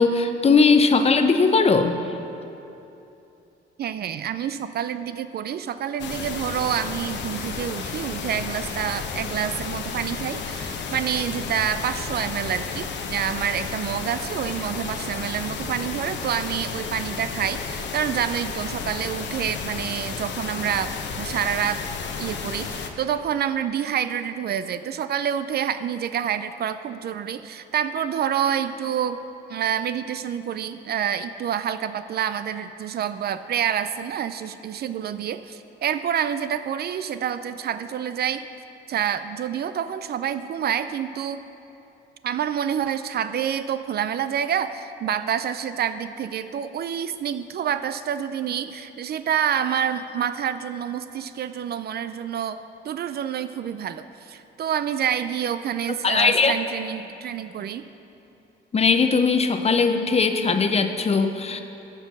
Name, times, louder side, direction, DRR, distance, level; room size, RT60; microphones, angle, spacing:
voice 1, 0.0-2.0 56.0-56.6 58.7-61.6, left 4 dB, 30° left, 7 dB, 0.7 m, -19 dB
voice 2, 3.8-21.8 22.2-29.2 29.5-38.4 38.9-41.4 42.2-57.9, right 9 dB, 55° right, 12 dB, 0.4 m, -27 dB
sound 1, 6.0-22.9, left 5 dB, 65° left, 0.8 m, -32 dB
13.5 x 4.6 x 5.9 m, 2.9 s
cardioid pair, 90°, 20 cm